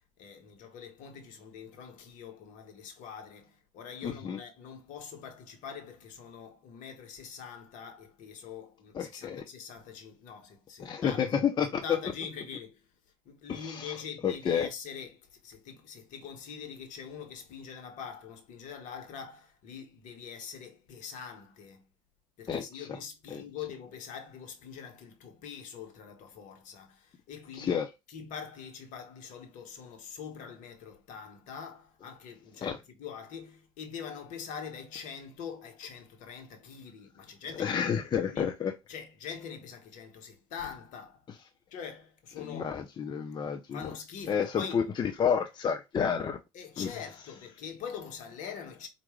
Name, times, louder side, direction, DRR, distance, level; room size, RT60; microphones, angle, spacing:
voice 1, 0.2-11.2 11.8-12.8 13.2-21.8 22.4-27.8 28.1-37.8 38.3-38.5 38.9-41.2 41.7-42.7 43.7-44.8 46.5-48.9, left 7 dB, 55° left, 1.2 m, -44 dB
voice 2, 4.0-4.4 8.9-9.5 10.8-11.8 13.5-14.0 14.2-14.7 22.5-22.9 23.3-23.4 27.5-27.9 32.6-32.8 37.5-38.7 42.4-43.9 44.3-46.4 46.8-46.9, left 7 dB, 30° left, 0.6 m, -30 dB
4.6 x 2.6 x 3.1 m
hypercardioid pair, 75°, 15 cm